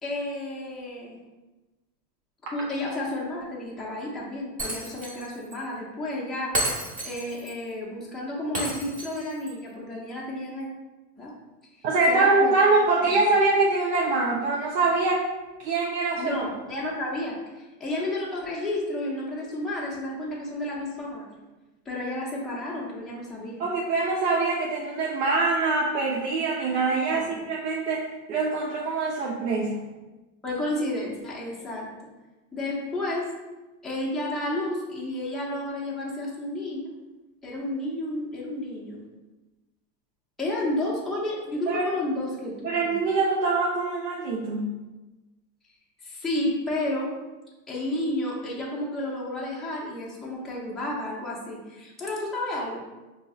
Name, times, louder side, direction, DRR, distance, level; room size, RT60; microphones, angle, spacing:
voice 1, 0.0-1.2 2.4-6.6 7.0-10.7 11.2-11.3 12.1-12.5 13.0-13.3 16.2-21.4 21.9-23.6 27.1-27.4 30.4-31.9 32.5-33.3 33.8-36.8 37.4-39.0 40.4-42.6 42.8-42.9 46.0-47.1 47.7-52.8, left 1 dB, ahead, -6 dB, 0.4 m, -31 dB
Shatter, 4.6-5.3 5.5-5.6 6.5-7.5 8.5-9.5, right 1 dB, 15° right, 1.0 m, -31 dB
voice 2, 11.8-15.2 15.6-16.5 23.6-29.8 41.7-41.9 42.6-44.7, right 3 dB, 75° right, -3 dB, 0.8 m, -24 dB
5.2 x 2.7 x 2.3 m, 1.1 s
supercardioid pair, 125°, 50 cm